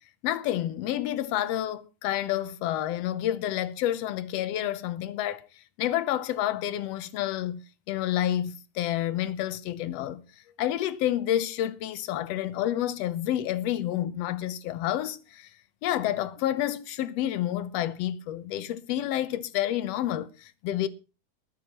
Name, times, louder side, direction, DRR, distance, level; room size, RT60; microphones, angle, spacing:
voice 1, 0.2-5.4 5.8-10.2 10.6-15.5 15.8-20.9, left 12 dB, 70° left, 1.7 m, -29 dB
21.0 x 11.0 x 3.0 m
omnidirectional pair, 3.4 m